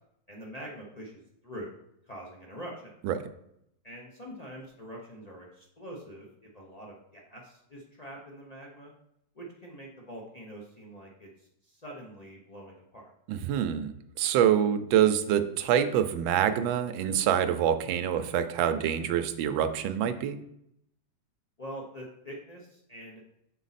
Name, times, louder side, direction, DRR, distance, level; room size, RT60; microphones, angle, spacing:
voice 1, 0.3-1.8 2.0-2.9 3.8-8.9 9.3-13.1 21.6-23.2, equal, 65° left, -3 dB, 0.3 m, -44 dB
voice 2, 13.3-20.4, right 9 dB, 85° right, 9 dB, 1.3 m, -26 dB
6.4 x 4.1 x 4.1 m, 0.76 s
omnidirectional pair, 2.1 m